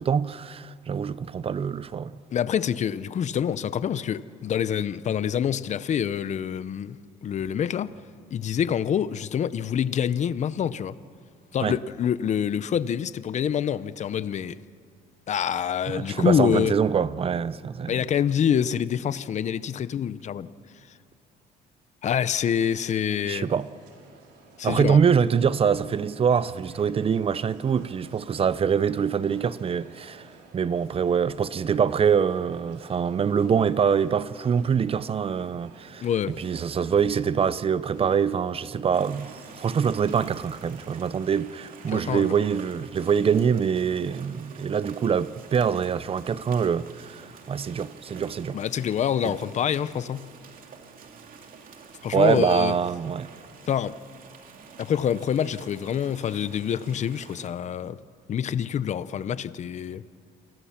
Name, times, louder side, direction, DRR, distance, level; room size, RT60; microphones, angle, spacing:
voice 1, 0.0-2.1 11.6-11.8 15.9-18.0 23.3-23.7 24.6-30.3 30.5-36.1 36.4-48.6 49.2-49.4 52.1-53.3, right 7 dB, 35° right, 0.7 m, -24 dB
voice 2, 2.3-7.9 8.3-11.0 11.5-14.6 15.3-16.7 17.9-20.5 22.0-23.5 24.6-25.0 36.0-36.4 41.9-42.3 48.5-50.3 52.0-52.7 53.7-54.0 54.8-58.0 58.3-60.0, left 8 dB, 45° left, 0.8 m, -26 dB
sound 1, 22.9-42.7, right 4 dB, 85° right, 4.5 m, -53 dB
sound 2, 38.9-57.5, right 5 dB, 55° right, 2.8 m, -48 dB
28.5 x 22.0 x 5.9 m
cardioid pair, 110°, 17 cm